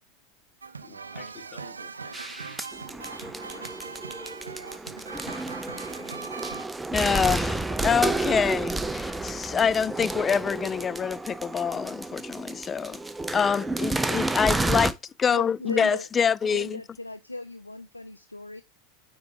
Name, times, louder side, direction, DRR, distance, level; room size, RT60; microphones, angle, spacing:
sound 1, 0.6-6.7, right 5 dB, 80° right, 0.5 m, -40 dB
voice 1, 0.8-4.3, left 6 dB, 40° left, 3.5 m, -51 dB
sound 2, 2.1-14.9, right 2 dB, 10° right, 0.7 m, -31 dB
voice 2, 6.9-13.0 13.3-16.8, left 6 dB, 25° left, 0.4 m, -26 dB
voice 3, 15.3-16.1 16.4-18.6, left 2 dB, 90° left, 0.4 m, -37 dB
9.4 x 4.5 x 3.6 m
figure-of-eight pair, 85°, 0 cm